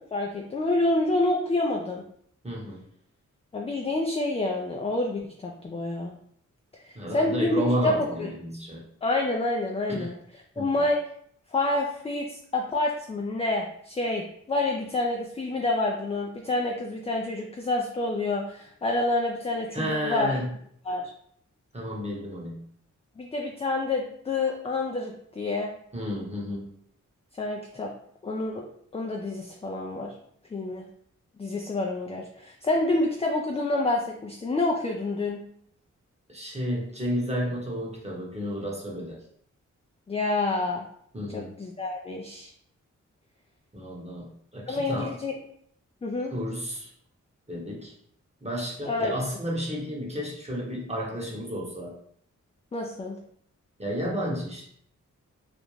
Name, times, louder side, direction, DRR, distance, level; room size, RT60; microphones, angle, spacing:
voice 1, 0.0-2.0 3.5-6.1 6.7-8.3 9.0-10.2 10.6-11.0 11.5-20.3 20.9-21.0 23.2-25.7 27.4-27.9 28.2-28.7 28.9-30.1 30.5-30.9 31.4-35.4 40.1-40.9 41.3-42.5 44.7-45.3 46.0-46.3 48.9-49.2 52.7-53.2, left 2 dB, 20° left, 1 dB, 0.3 m, -28 dB
voice 2, 2.4-2.8 6.9-8.8 9.9-10.1 10.6-10.8 19.7-20.5 21.7-22.6 25.9-26.7 36.3-39.2 41.1-41.5 43.7-45.1 46.3-46.9 47.5-47.9 48.4-52.0 53.8-54.7, equal, 20° right, -3 dB, 0.9 m, -31 dB
2.5 x 2.1 x 3.0 m, 0.67 s
cardioid pair, 45°, 31 cm